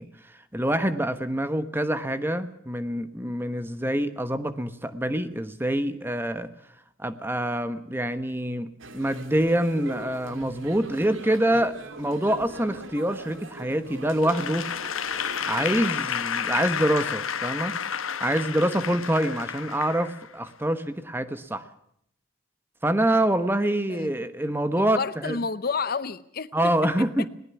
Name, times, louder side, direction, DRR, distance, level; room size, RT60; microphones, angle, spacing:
voice 1, 0.0-6.5 7.0-14.7 15.4-17.7 18.2-21.7 22.8-25.4 26.5-27.3, right 1 dB, 10° right, 11 dB, 1.1 m, -26 dB
sound 1, 8.8-15.9, right 2 dB, 75° right, 2.5 m, -41 dB
Applause / Crowd, 14.2-20.5, left 7 dB, 85° left, 1.1 m, -31 dB
voice 2, 24.8-26.7, left 5 dB, 45° left, 15 dB, 0.7 m, -30 dB
20.5 x 19.0 x 7.1 m, 0.71 s
head